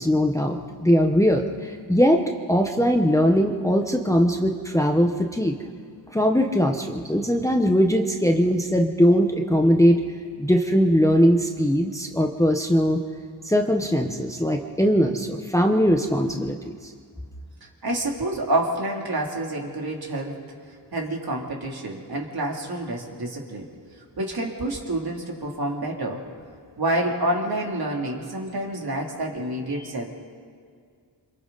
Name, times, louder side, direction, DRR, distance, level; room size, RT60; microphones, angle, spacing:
voice 1, 0.0-2.2 2.5-5.6 6.1-10.0 10.4-13.0 13.4-16.7, equal, 5° left, 2 dB, 1.1 m, -20 dB
voice 2, 17.8-20.4 20.9-23.7 24.2-26.2 26.8-30.1, right 1 dB, 55° right, -1 dB, 3.2 m, -28 dB
27.5 x 26.5 x 4.1 m, 2.1 s
wide cardioid pair, 120°, 45 cm